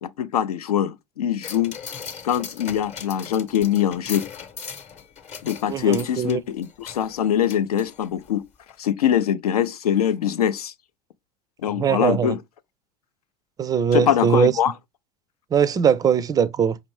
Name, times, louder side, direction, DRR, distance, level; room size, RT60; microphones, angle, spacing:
voice 1, 0.0-1.8 2.2-4.3 5.4-8.4 8.8-10.7 11.6-12.4 13.9-14.7, left 9 dB, 75° left, 0.4 m, -23 dB
sound 1, 1.4-8.3 8.7-8.8, left 6 dB, 35° left, 0.9 m, -39 dB
voice 2, 5.7-6.4 11.7-12.3 13.6-14.5 15.5-16.8, right 7 dB, 20° right, 0.3 m, -21 dB
5.3 x 2.5 x 3.1 m
figure-of-eight pair, 75°, 19 cm